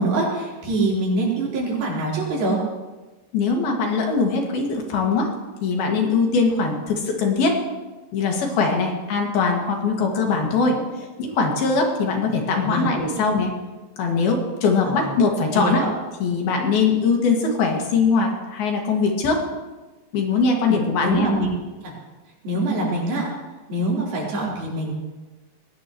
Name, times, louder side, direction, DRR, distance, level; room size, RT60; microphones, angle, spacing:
voice 1, 0.0-2.6 10.0-10.5 12.2-12.9 13.1-13.2 14.8-15.1 15.5-15.9 21.0-21.5 21.8-21.9 22.4-23.3 23.7-24.9, right 2 dB, 80° right, -5 dB, 5.9 m, -24 dB
voice 2, 3.3-5.3 5.6-7.6 8.1-10.8 11.2-13.5 14.0-15.8 16.2-19.4 20.1-21.3, left 4 dB, 85° left, 1 dB, 4.1 m, -21 dB
20.0 x 18.0 x 3.1 m, 1.2 s
omnidirectional pair, 4.2 m